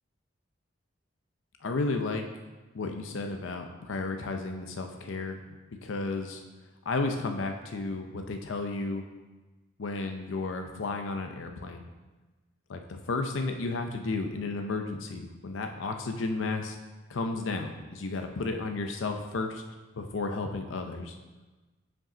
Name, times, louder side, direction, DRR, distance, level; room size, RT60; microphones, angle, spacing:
voice 1, 1.6-2.3 2.7-5.4 5.8-6.4 6.9-9.0 9.8-11.8 12.7-16.8 17.1-19.6 20.0-21.2, left 3 dB, 80° left, 5 dB, 0.6 m, -33 dB
6.0 x 5.2 x 4.9 m, 1.2 s
head